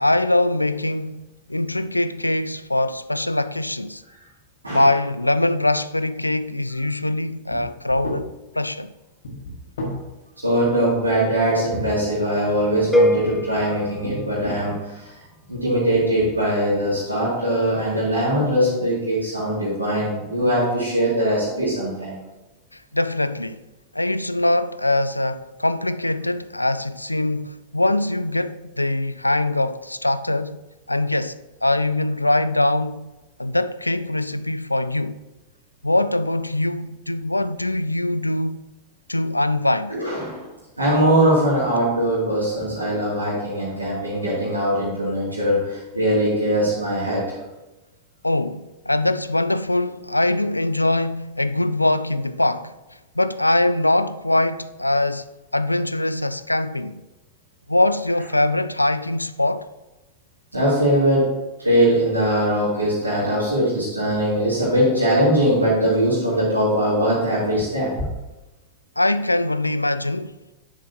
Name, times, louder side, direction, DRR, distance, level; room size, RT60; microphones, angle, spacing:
voice 1, 0.0-4.0 4.7-8.9 22.7-23.7 23.9-30.6 30.9-33.1 33.4-35.2 35.8-38.6 39.1-40.0 48.2-52.7 53.2-55.3 55.5-57.1 57.7-59.7 69.0-70.4, left 1 dB, 85° left, 0.3 m, -22 dB
sound 1, 7.5-7.6 7.9-8.2 9.2-10.0 11.7-12.5 13.1-13.4 14.0-14.7 15.5-15.6 16.0-16.3, left 1 dB, 65° left, 1.9 m, -32 dB
voice 2, 10.4-15.1 15.5-22.2 39.9-40.5 40.8-47.2 60.5-61.3 61.6-67.9, equal, 85° right, 2.6 m, -21 dB
sound 2, 12.9-15.0, equal, 5° left, 0.8 m, -23 dB
9.9 x 7.3 x 2.8 m
figure-of-eight pair, 90°, 0 cm